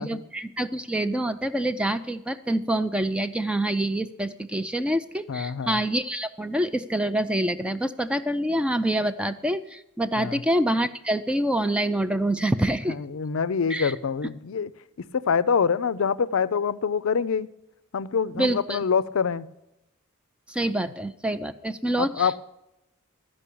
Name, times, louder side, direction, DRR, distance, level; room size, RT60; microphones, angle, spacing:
voice 1, 0.0-13.0 13.7-13.9 18.4-18.8 20.5-22.4, right 1 dB, 5° right, 11 dB, 0.3 m, -26 dB
voice 2, 5.3-5.8 10.2-10.4 12.9-14.7 15.1-17.5 17.9-19.5 22.0-22.3, left 6 dB, 60° left, 16 dB, 0.5 m, -25 dB
13.0 x 5.3 x 8.4 m, 0.88 s
head